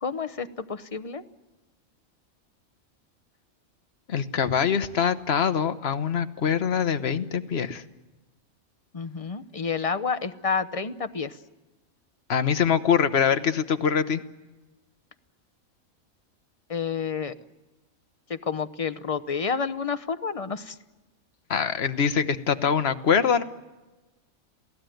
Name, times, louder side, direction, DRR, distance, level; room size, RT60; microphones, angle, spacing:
voice 1, 0.0-1.2 8.9-11.4 16.7-17.3 18.3-20.8, left 5 dB, 30° left, 11 dB, 0.7 m, -29 dB
voice 2, 4.1-7.8 12.3-14.2 21.5-23.4, left 7 dB, 50° left, 10 dB, 1.2 m, -24 dB
27.5 x 17.0 x 9.2 m, 1.1 s
omnidirectional pair, 1.5 m